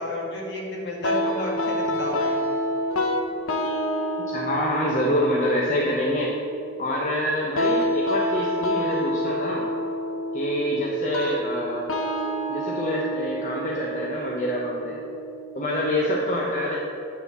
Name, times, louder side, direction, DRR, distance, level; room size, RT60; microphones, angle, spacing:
voice 1, 0.0-2.5, equal, 55° left, -3 dB, 2.0 m, -31 dB
sound 1, 1.0-16.0, equal, 75° left, 0.7 m, -28 dB
voice 2, 4.3-6.3 6.8-9.7 10.3-11.9 12.5-15.0 15.5-16.8, left 1 dB, 35° left, -3 dB, 0.8 m, -26 dB
9.6 x 4.1 x 6.8 m, 2.7 s
head